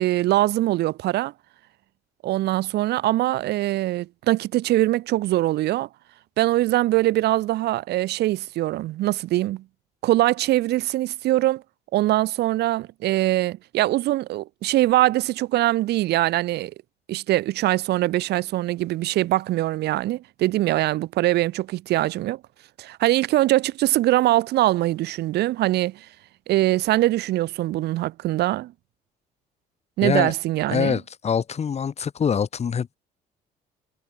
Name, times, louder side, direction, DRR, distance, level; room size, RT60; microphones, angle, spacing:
voice 1, 0.0-1.3 2.2-5.9 6.4-9.6 10.0-11.6 11.9-16.7 17.1-22.4 22.8-26.1 26.5-28.7 30.0-31.0, right 16 dB, 75° right, 6.4 m, -22 dB
voice 2, 30.0-30.3 30.7-33.0, left 7 dB, 40° left, 5.4 m, -24 dB
cardioid pair, 110°, 17 cm